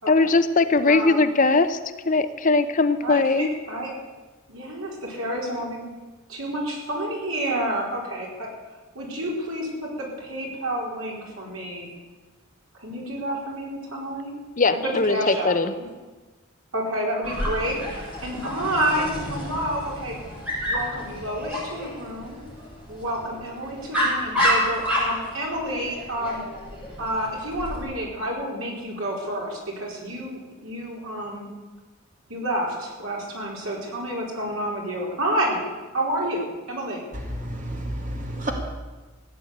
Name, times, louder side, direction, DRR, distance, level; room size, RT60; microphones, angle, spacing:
voice 1, 0.1-1.8 2.1-3.5 14.6-15.7, left 3 dB, 40° left, 0.7 m, -20 dB
voice 2, 0.9-1.2 3.0-4.0 4.5-5.8 6.3-8.5 8.9-11.9 12.8-14.3 14.7-15.8 16.7-20.2 20.7-22.4 22.9-26.5 27.0-31.5 32.3-35.6 35.9-37.0, right 1 dB, 75° right, 4.6 m, -29 dB
Dog, 17.2-27.8, equal, 5° right, 7.2 m, -29 dB
voice 3, 37.1-38.5, right 1 dB, 35° right, 2.2 m, -31 dB
15.5 x 9.3 x 8.6 m
head